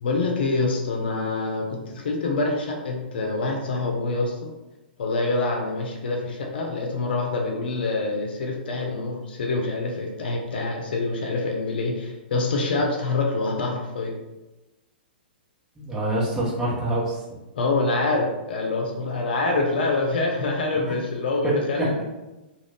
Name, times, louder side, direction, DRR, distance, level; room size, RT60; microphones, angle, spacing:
voice 1, 0.0-4.5 5.0-14.1 17.5-22.0, left 3 dB, 65° left, 1 dB, 0.7 m, -26 dB
voice 2, 15.8-17.2 20.8-20.9 21.4-21.5 21.8-22.0, right 1 dB, 10° right, -8 dB, 1.1 m, -25 dB
2.5 x 2.4 x 3.4 m, 1.0 s
hypercardioid pair, 120°, 6 cm